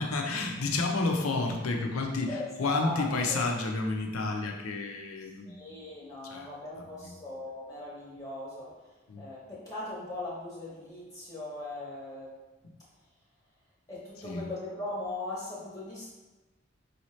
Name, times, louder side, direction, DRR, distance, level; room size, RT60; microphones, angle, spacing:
voice 1, 0.0-5.7 6.3-6.5 9.1-9.2 14.2-14.5, left 3 dB, 90° left, 2 dB, 0.6 m, -30 dB
voice 2, 2.3-3.4 5.2-12.3 13.9-16.1, left 2 dB, 15° left, -7 dB, 0.8 m, -39 dB
4.9 x 2.8 x 3.1 m, 1.2 s
head